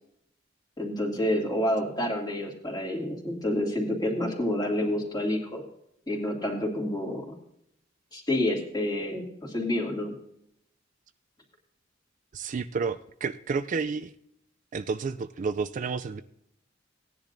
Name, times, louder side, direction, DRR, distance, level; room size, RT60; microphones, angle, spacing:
voice 1, 0.8-5.6 6.1-7.2 8.1-10.1, left 1 dB, 20° left, -1 dB, 2.5 m, -28 dB
voice 2, 12.3-14.1 14.7-16.2, right 5 dB, 40° right, 11 dB, 0.3 m, -30 dB
17.5 x 10.0 x 2.6 m, 0.75 s
head